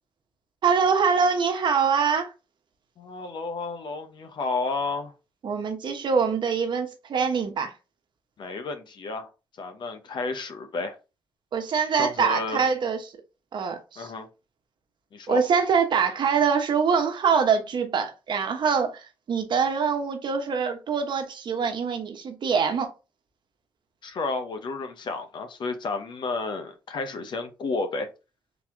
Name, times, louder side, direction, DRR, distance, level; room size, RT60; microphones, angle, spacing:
voice 1, 0.6-2.3 5.4-7.7 11.5-13.0 13.5-14.1 15.3-22.9, right 6 dB, 60° right, 1.1 m, -24 dB
voice 2, 3.0-5.1 8.4-9.3 9.6-10.9 12.0-12.6 14.0-14.3 15.1-15.4 24.0-28.1, left 3 dB, 60° left, 0.9 m, -31 dB
4.0 x 2.9 x 3.6 m
cardioid pair, 70°, 9 cm